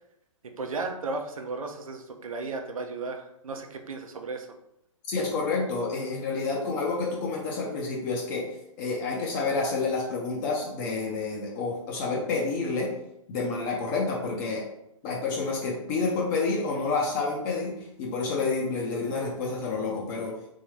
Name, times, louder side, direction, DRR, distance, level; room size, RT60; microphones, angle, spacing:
voice 1, 0.4-4.5, right 3 dB, 80° right, 4 dB, 0.6 m, -35 dB
voice 2, 5.1-8.5 8.8-12.9 13.3-14.6 15.0-20.4, left 4 dB, 35° left, -2 dB, 0.8 m, -29 dB
3.6 x 2.6 x 3.3 m, 0.79 s
hypercardioid pair, 130°, 17 cm